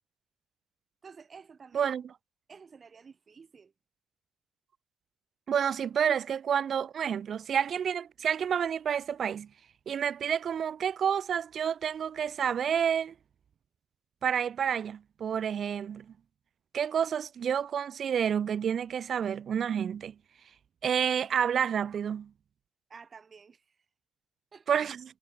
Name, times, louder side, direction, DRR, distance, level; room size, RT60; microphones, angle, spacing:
voice 1, 1.0-2.0 2.5-3.7 22.9-23.8 24.5-24.8, right 5 dB, 40° right, 7.5 m, -51 dB
voice 2, 5.5-9.5 9.9-13.1 14.2-16.1 16.7-20.1 20.8-22.3 24.7-25.0, right 8 dB, 55° right, 0.5 m, -29 dB
cardioid pair, 90°, 0 cm